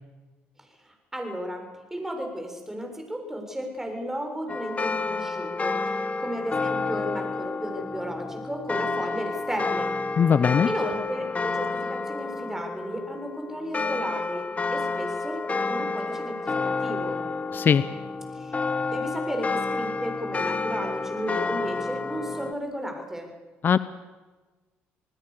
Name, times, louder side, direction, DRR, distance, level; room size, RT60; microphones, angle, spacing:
voice 1, 0.6-5.8 6.2-10.0 10.7-14.4 14.7-17.2 18.3-18.6 18.9-23.3, equal, 10° right, 3 dB, 7.2 m, -34 dB
sound 1, 4.5-22.5, left 3 dB, 30° left, 1.5 m, -30 dB
voice 2, 10.2-10.7 17.5-17.9 23.6-23.8, left 7 dB, 45° left, 15 dB, 0.9 m, -20 dB
28.5 x 19.5 x 6.9 m, 1.3 s
supercardioid pair, 80°, 5 cm